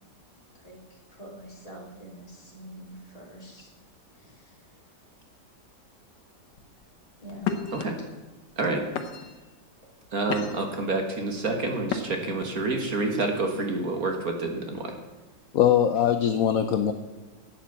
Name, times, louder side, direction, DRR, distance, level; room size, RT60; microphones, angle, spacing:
voice 1, 0.5-3.7 4.2-4.5 7.2-7.7 9.8-9.9 12.2-12.3, right 1 dB, 20° left, -3 dB, 3.3 m, -45 dB
sound 1, 6.5-6.8 7.4-7.8 8.5-8.6 9.0-9.4 10.0-10.8 11.8-12.4, left 6 dB, 85° left, 1.7 m, -32 dB
voice 2, 10.1-14.9, right 3 dB, 55° right, 3 dB, 1.9 m, -28 dB
voice 3, 15.5-16.9, left 9 dB, 60° left, 7 dB, 1.0 m, -21 dB
12.0 x 9.1 x 7.3 m, 1.2 s
omnidirectional pair, 1.9 m